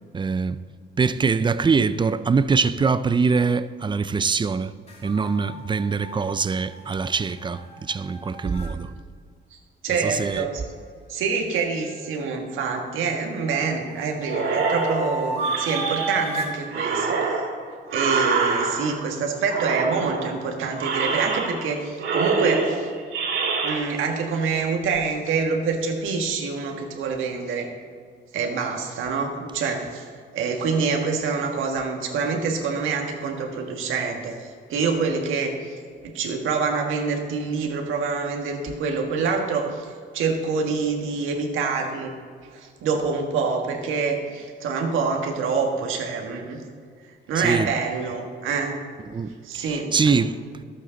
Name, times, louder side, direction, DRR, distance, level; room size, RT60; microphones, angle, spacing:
voice 1, 0.1-0.6 1.0-4.7 5.0-8.9 10.0-10.5 47.4-47.7 49.1-50.4, right 5 dB, 25° right, 0.4 m, -23 dB
sound 1, 4.9-8.7 11.6-12.9 13.4-16.6, right 2 dB, 30° left, 2.6 m, -34 dB
voice 2, 9.8-10.6 11.1-17.5 17.9-22.9 23.6-27.7 28.3-30.0 30.3-35.7 36.0-39.9 40.1-42.1 42.5-46.6 47.3-48.8 49.4-50.1, right 5 dB, 85° right, 1.6 m, -26 dB
sound 2, 14.3-16.4 16.7-19.1 19.5-20.4 20.8-21.7 22.0-23.8, right 4 dB, 70° right, 2.8 m, -25 dB
12.5 x 8.3 x 3.9 m
cardioid pair, 90°, 20 cm